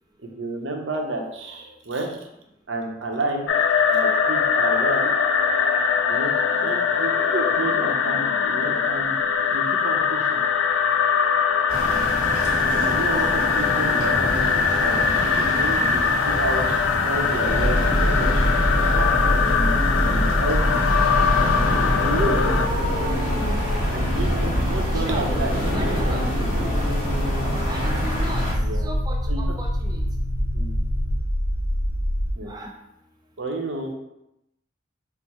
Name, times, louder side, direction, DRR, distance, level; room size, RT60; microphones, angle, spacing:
voice 1, 0.4-2.2 2.7-3.5 3.9-5.2 6.1-9.1 9.5-10.4 12.8-19.1 19.3-20.8 21.9-22.4 23.9-25.5 27.4-27.6 28.6-28.8 29.3-29.4 30.5-30.8 32.4-32.5 33.4-33.9, right 2 dB, 75° right, 2 dB, 0.7 m, -31 dB
sound 1, 3.5-22.7, left 6 dB, 90° left, 0.4 m, -22 dB
sound 2, 11.7-28.5, equal, 50° left, 1.3 m, -28 dB
sound 3, 17.5-32.3, equal, 65° left, 0.8 m, -24 dB
voice 2, 24.9-25.3 25.7-26.3 27.6-30.0 32.4-32.7, right 1 dB, 20° right, 1 dB, 0.4 m, -36 dB
4.4 x 2.0 x 4.2 m, 0.85 s
head